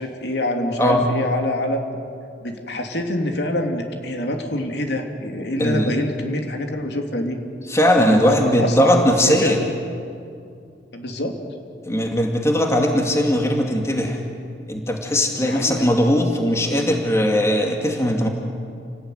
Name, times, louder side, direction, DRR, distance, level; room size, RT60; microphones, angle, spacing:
voice 1, 0.0-1.8 2.4-7.4 8.0-9.6 10.9-11.4 15.4-15.9, left 1 dB, 70° left, 3 dB, 3.1 m, -25 dB
voice 2, 5.6-6.0 7.7-9.6 11.8-14.2 14.7-18.3, equal, 15° left, 2 dB, 2.4 m, -19 dB
29.0 x 19.0 x 9.5 m, 2.4 s
head